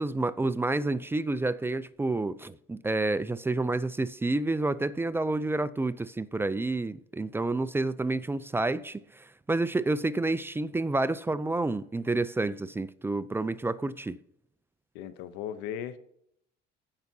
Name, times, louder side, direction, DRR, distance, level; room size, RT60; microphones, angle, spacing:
voice 1, 0.0-14.2, right 2 dB, 10° right, 0.4 m, -29 dB
voice 2, 14.9-16.0, left 9 dB, 85° left, 0.8 m, -37 dB
16.5 x 5.8 x 2.8 m
cardioid pair, 100°, 19 cm